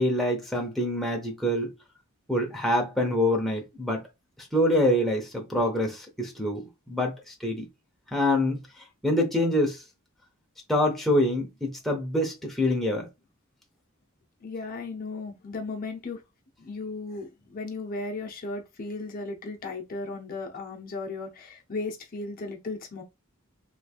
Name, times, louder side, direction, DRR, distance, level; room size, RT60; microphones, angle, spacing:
voice 1, 0.0-1.7 2.3-4.0 4.5-7.7 8.1-8.6 9.0-9.8 10.7-13.1, left 1 dB, ahead, 0.7 m, -25 dB
voice 2, 14.4-16.2 16.6-23.0, left 3 dB, 45° left, 0.7 m, -36 dB
3.2 x 3.2 x 2.4 m
head